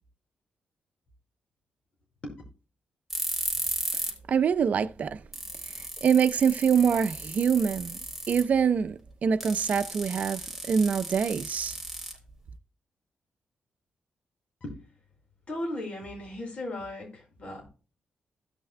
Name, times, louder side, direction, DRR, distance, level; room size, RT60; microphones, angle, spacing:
sound 1, 3.1-4.2 4.5-4.6 5.1-5.2 5.3-8.6 9.4-12.5, right 1 dB, ahead, 3.4 m, -35 dB
voice 1, 4.3-5.2 6.0-8.0 8.3-11.8, right 7 dB, 55° right, 0.7 m, -25 dB
voice 2, 15.5-17.7, left 1 dB, 45° left, 5.3 m, -36 dB
16.0 x 6.2 x 2.3 m
cardioid pair, 105°, 3 cm